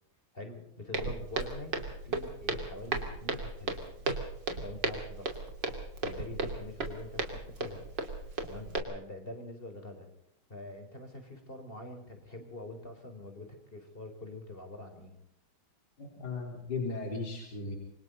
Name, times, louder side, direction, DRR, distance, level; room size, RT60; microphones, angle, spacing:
voice 1, 0.3-1.7 2.0-3.9 4.6-5.4 6.0-7.9 8.4-10.1 10.5-15.2, left 2 dB, 25° left, 6 dB, 4.4 m, -45 dB
Walk footsteps, 0.9-8.8, right 3 dB, 60° right, 3.5 m, -35 dB
voice 2, 16.0-17.8, left 3 dB, 50° left, 2 dB, 4.6 m, -36 dB
28.0 x 23.5 x 4.0 m, 0.76 s
omnidirectional pair, 2.2 m